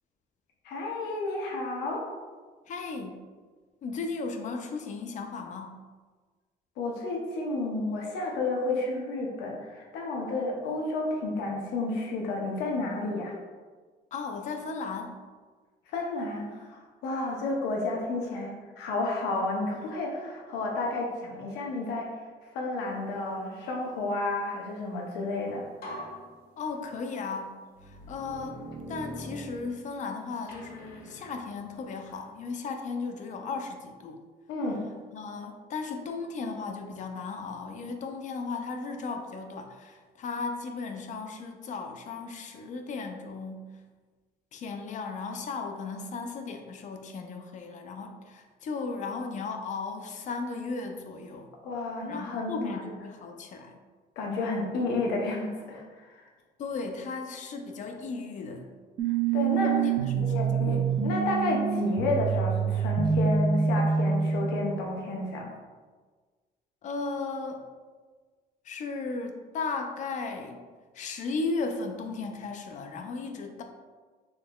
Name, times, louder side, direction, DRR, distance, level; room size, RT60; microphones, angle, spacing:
voice 1, 0.6-2.1 6.8-13.3 15.9-22.1 22.5-25.6 34.5-34.9 51.6-52.8 54.2-56.1 59.3-59.7 60.2-65.5, left 2 dB, 85° left, -1 dB, 0.7 m, -31 dB
voice 2, 2.7-3.2 3.8-5.8 14.1-15.2 26.6-28.6 28.9-34.2 35.1-43.7 44.5-51.5 52.1-53.8 56.6-58.7 59.6-61.1 66.8-67.7 68.6-70.6 70.9-73.6, left 4 dB, 45° left, 5 dB, 0.4 m, -36 dB
sound 1, 25.2-25.4 25.8-27.1 27.7-30.1 30.5-32.3, equal, 65° left, 1.2 m, -44 dB
sound 2, 59.0-64.9, right 6 dB, 55° right, 0.5 m, -26 dB
3.7 x 2.9 x 2.2 m, 1.4 s
cardioid pair, 110°, 17 cm